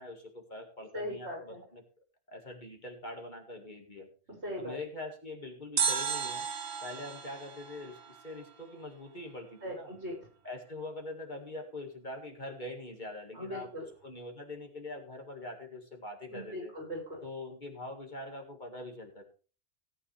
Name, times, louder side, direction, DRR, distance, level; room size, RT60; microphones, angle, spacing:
voice 1, 0.0-1.8 2.3-4.1 4.6-6.5 6.8-9.9 10.4-13.7 14.0-16.7 17.2-19.2, left 2 dB, 40° left, 2 dB, 2.2 m, -43 dB
voice 2, 0.9-1.6 4.4-4.8 9.6-10.2 13.3-13.9 16.3-17.2, equal, 60° right, -1 dB, 5.3 m, -39 dB
sound 1, 5.8-8.9 9.1-9.2, right 6 dB, 85° right, 1.6 m, -34 dB
17.5 x 8.7 x 3.4 m, 0.37 s
omnidirectional pair, 1.3 m